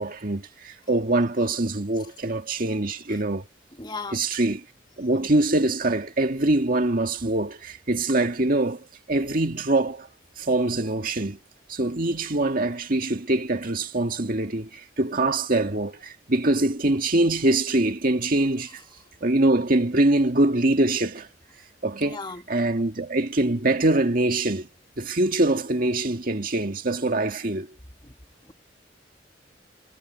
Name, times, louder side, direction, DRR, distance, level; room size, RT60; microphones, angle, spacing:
voice 1, 0.0-3.5 4.1-4.6 5.0-10.1 10.4-11.4 11.7-18.8 19.2-21.3 21.8-22.2 22.5-24.7 25.0-27.7, right 2 dB, 50° right, 2.0 m, -24 dB
voice 2, 3.8-4.2 22.0-22.4, left 4 dB, 25° left, 1.7 m, -35 dB
head